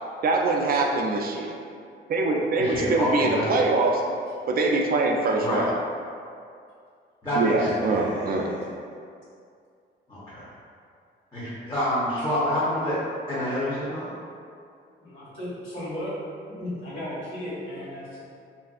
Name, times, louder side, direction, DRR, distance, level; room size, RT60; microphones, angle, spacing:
voice 1, 0.2-1.6 2.1-4.0 4.5-5.7 7.3-8.5, right 3 dB, 50° right, 1 dB, 0.4 m, -23 dB
voice 2, 2.6-3.5 5.4-5.6 7.2-8.7 10.1-10.5 11.3-13.0 13.3-14.1, equal, 15° left, -12 dB, 0.8 m, -28 dB
voice 3, 15.0-16.1 16.6-18.2, left 1 dB, 85° left, -10 dB, 1.3 m, -35 dB
3.3 x 2.5 x 2.4 m, 2.3 s
cardioid pair, 90°, 20 cm